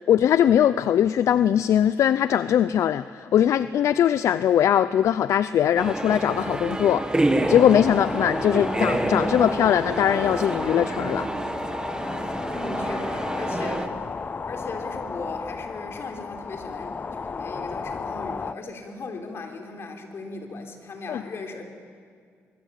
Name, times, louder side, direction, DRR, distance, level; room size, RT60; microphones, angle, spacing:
voice 1, 0.1-7.1 7.5-11.3 21.1-21.2, left 10 dB, 75° left, 15 dB, 0.5 m, -21 dB
sound 1, 5.8-13.9, right 2 dB, 15° right, 1.7 m, -28 dB
sound 2, 7.4-18.5, left 5 dB, 35° left, 0.6 m, -34 dB
voice 2, 12.5-14.0 14.5-21.6, left 3 dB, 55° left, 4 dB, 3.7 m, -37 dB
24.5 x 23.5 x 8.3 m, 2.1 s
cardioid pair, 100°, 5 cm